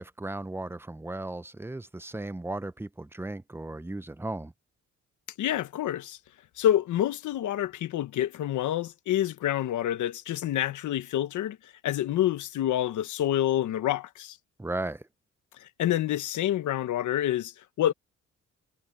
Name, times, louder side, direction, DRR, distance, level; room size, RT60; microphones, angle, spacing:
voice 1, 0.0-4.5 14.6-15.0, right 2 dB, 10° right, 0.8 m, -36 dB
voice 2, 5.4-6.2 6.6-14.4 15.6-17.9, left 12 dB, 75° left, 1.3 m, -28 dB
cardioid pair, 90°, 30 cm